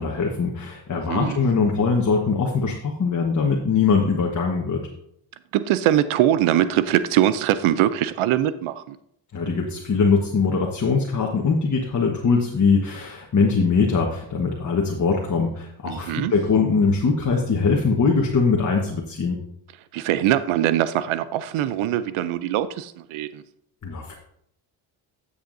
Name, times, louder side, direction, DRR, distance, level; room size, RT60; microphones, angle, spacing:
voice 1, 0.0-4.8 9.3-19.4 23.8-24.1, left 4 dB, 35° left, 0 dB, 1.3 m, -22 dB
voice 2, 0.9-1.4 5.5-9.0 15.9-16.3 19.9-23.4, right 12 dB, 85° right, 14 dB, 0.6 m, -22 dB
12.5 x 6.9 x 2.6 m, 0.72 s
cardioid pair, 70°, 48 cm